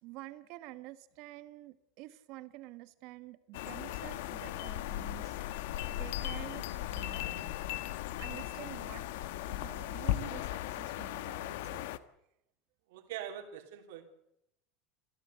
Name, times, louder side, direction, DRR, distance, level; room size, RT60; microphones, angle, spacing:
voice 1, 0.0-5.6 5.9-7.6 8.2-9.1 9.5-11.9, right 17 dB, 45° right, 13 dB, 1.3 m, -49 dB
sound 1, 3.5-12.0, left 14 dB, 70° left, 1.1 m, -37 dB
voice 2, 12.9-14.0, right 10 dB, 75° right, 5 dB, 3.4 m, -43 dB
28.0 x 15.0 x 8.2 m, 0.81 s
supercardioid pair, 180°, 0 cm